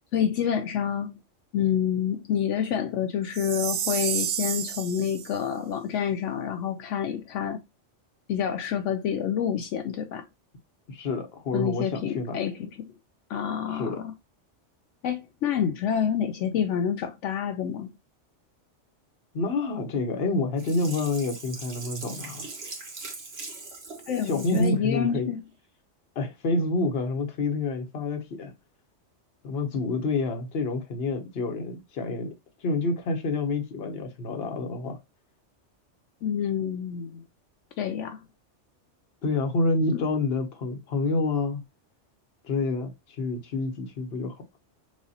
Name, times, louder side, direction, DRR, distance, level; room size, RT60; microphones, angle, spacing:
voice 1, 0.1-1.2 1.5-7.6 8.3-10.3 11.5-12.9 13.3-14.1 15.0-17.9 24.1-25.4 36.2-37.2 37.8-38.2 39.9-40.0, left 8 dB, 80° left, 0.9 m, -28 dB
Chime, 3.3-5.3, right 10 dB, 90° right, 1.0 m, -30 dB
voice 2, 10.9-12.4 13.7-14.0 19.3-22.4 24.2-25.3 26.1-28.5 29.4-32.3 32.6-35.0 39.2-41.6 42.4-44.4, left 3 dB, 55° left, 1.1 m, -28 dB
Sink (filling or washing), 20.6-24.8 25.2-25.3, right 3 dB, 60° right, 1.5 m, -40 dB
6.2 x 2.4 x 2.7 m
omnidirectional pair, 1.2 m